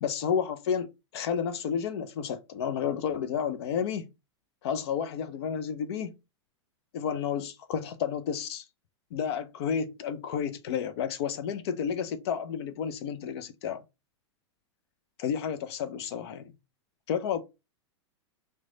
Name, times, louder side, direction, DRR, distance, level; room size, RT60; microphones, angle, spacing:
voice 1, 0.0-4.1 4.6-6.1 6.9-8.6 9.1-13.8 15.2-16.5 17.1-17.4, left 7 dB, 60° left, 0.5 m, -31 dB
3.1 x 2.2 x 3.7 m
hypercardioid pair, 115°, 15 cm